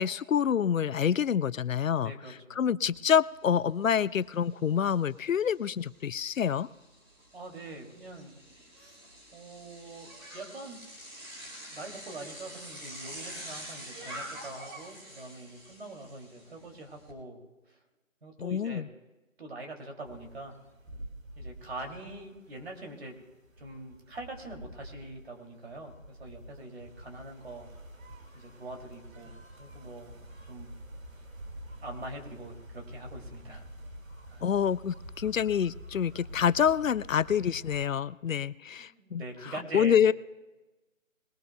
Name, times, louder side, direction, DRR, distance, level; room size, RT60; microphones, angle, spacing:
voice 1, 0.0-2.1 2.6-6.7 18.4-18.9 34.4-40.1, left 8 dB, 75° left, 20 dB, 0.5 m, -27 dB
voice 2, 2.0-2.6 7.3-8.3 8.8-9.0 9.3-10.8 11.7-17.4 17.7-17.8 18.2-18.8 19.4-20.6 21.4-23.2 23.6-27.7 28.3-30.2 30.5-30.7 31.8-33.7 34.3-34.5 38.8-40.0, right 2 dB, 50° right, 2 dB, 2.8 m, -44 dB
Bicycle, 2.9-3.0 3.3-17.1, right 1 dB, 20° right, 2.0 m, -47 dB
sound 1, 20.0-37.9, right 1 dB, 75° right, 2.2 m, -48 dB
21.0 x 18.0 x 2.3 m, 1.1 s
figure-of-eight pair, 155°, 41 cm